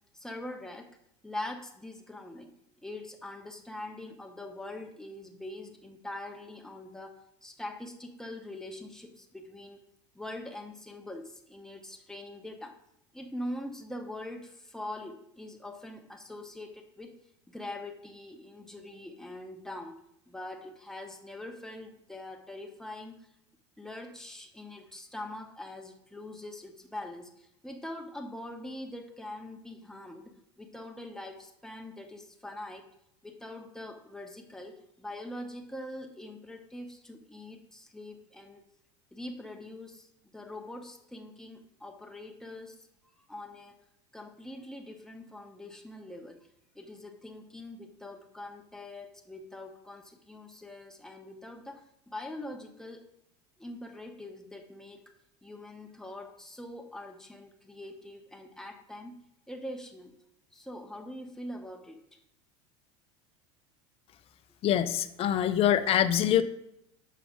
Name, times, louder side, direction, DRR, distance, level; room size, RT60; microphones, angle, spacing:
voice 1, 0.1-0.9 1.2-2.5 2.8-9.8 10.1-12.8 13.1-17.2 17.5-20.0 20.3-23.3 23.8-32.9 33.2-38.6 39.1-42.9 43.3-43.8 44.1-46.4 46.7-53.1 53.6-55.0 55.4-59.2 59.5-60.1 60.5-62.2, left 1 dB, 5° left, 4 dB, 0.8 m, -43 dB
voice 2, 64.6-66.4, left 10 dB, 35° left, 10 dB, 0.4 m, -24 dB
6.3 x 4.9 x 3.6 m, 0.80 s
hypercardioid pair, 95°, 16 cm